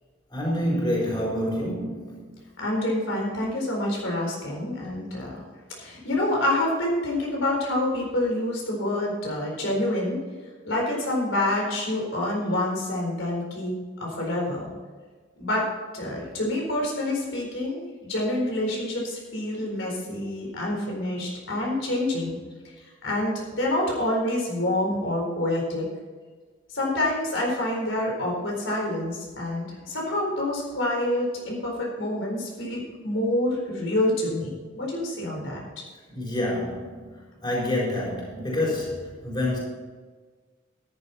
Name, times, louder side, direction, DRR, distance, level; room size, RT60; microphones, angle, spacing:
voice 1, 0.3-2.3 36.1-37.1 37.4-39.6, left 1 dB, 25° left, -4 dB, 4.3 m, -27 dB
voice 2, 2.6-5.4 5.7-10.2 10.6-14.7 15.4-15.7 15.9-22.4 23.0-25.9 26.7-35.8, left 1 dB, 75° left, -1 dB, 4.3 m, -27 dB
13.5 x 11.0 x 4.3 m, 1.4 s
head